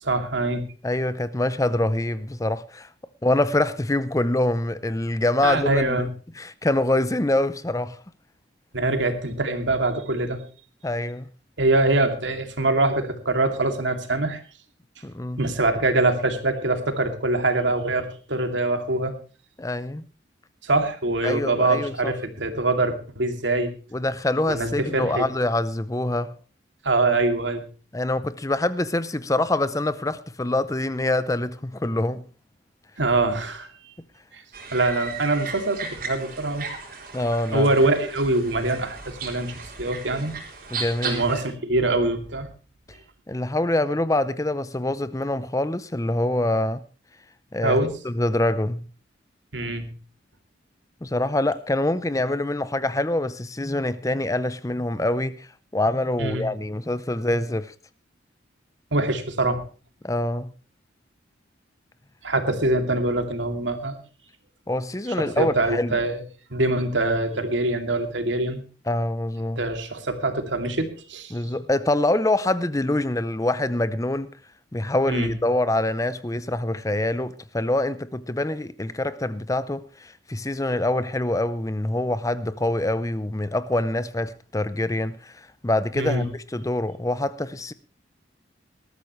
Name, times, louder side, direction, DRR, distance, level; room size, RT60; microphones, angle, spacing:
voice 1, 0.0-0.7 5.4-6.1 8.7-10.4 11.6-14.4 15.4-19.1 20.6-23.7 24.5-25.2 26.8-27.7 33.0-33.7 34.3-34.4 34.7-36.7 37.5-40.3 41.0-42.5 47.6-47.9 49.5-49.9 56.2-56.4 58.9-59.6 62.2-64.0 65.2-66.2 66.5-68.6 69.6-71.3 75.1-75.3 86.0-86.3, right 2 dB, 75° right, 2.6 m, -24 dB
voice 2, 0.8-2.9 3.2-6.1 6.4-8.0 10.8-11.3 15.0-15.4 19.6-20.1 21.2-22.1 23.9-26.3 27.9-32.2 37.1-37.7 40.7-41.2 42.9-43.0 43.3-46.8 47.5-47.8 48.0-48.8 51.0-57.7 60.0-60.5 64.7-66.0 68.9-69.6 71.3-74.3 74.7-87.7, left 1 dB, 15° left, 0.6 m, -25 dB
sound 1, 34.5-41.4, right 4 dB, 50° right, 4.2 m, -36 dB
20.0 x 13.5 x 3.1 m
head